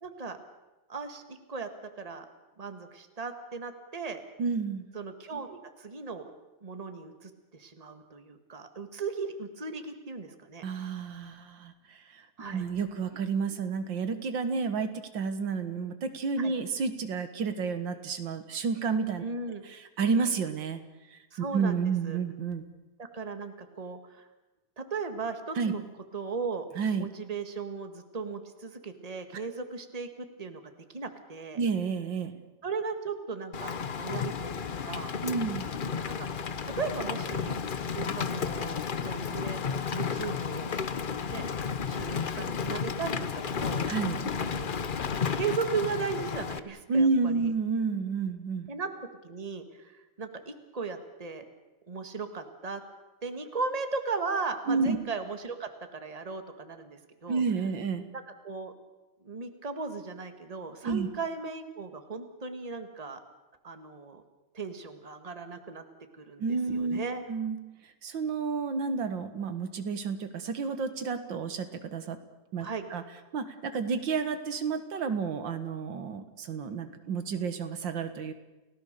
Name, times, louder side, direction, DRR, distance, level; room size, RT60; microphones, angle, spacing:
voice 1, 0.0-0.4 0.9-1.7 2.0-2.3 2.6-4.2 4.9-6.3 6.6-10.9 12.4-12.7 16.4-16.5 19.2-19.6 21.3-22.2 23.0-24.3 24.8-25.8 26.1-26.7 27.0-30.1 30.4-30.6 30.9-31.6 32.6-35.1 36.6-39.6 39.9-40.8 41.1-43.8 44.4-45.0 45.3-47.5 48.7-48.9 49.2-51.4 51.9-52.8 53.2-57.4 58.1-58.7 59.2-63.2 63.6-64.2 64.5-65.8 66.1-67.2 72.6-72.8, right 4 dB, 20° right, 7 dB, 1.7 m, -37 dB
voice 2, 4.4-4.9 10.6-12.2 12.5-19.2 19.7-20.8 21.1-22.6 25.6-25.7 26.8-27.1 31.6-32.4 35.2-35.7 43.9-44.3 46.9-48.7 54.7-55.0 57.3-58.1 60.8-61.1 66.4-67.0 67.3-67.6 68.0-72.2 72.5-73.0 73.3-78.3, right 5 dB, 85° right, 9 dB, 2.2 m, -30 dB
Rain, 33.5-46.6, left 6 dB, 55° left, 0.5 m, -32 dB
29.5 x 17.0 x 6.7 m, 1.1 s
omnidirectional pair, 2.0 m